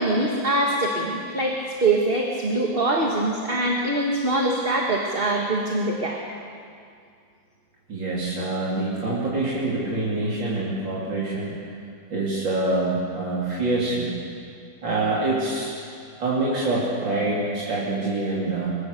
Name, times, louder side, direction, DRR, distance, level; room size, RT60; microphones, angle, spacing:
voice 1, 0.0-6.2, right 2 dB, 30° right, 0 dB, 1.9 m, -23 dB
voice 2, 7.9-11.5 12.1-14.1 14.8-15.7 16.2-18.8, right 2 dB, 90° right, -7 dB, 4.0 m, -25 dB
23.0 x 22.0 x 6.8 m, 2.3 s
omnidirectional pair, 2.0 m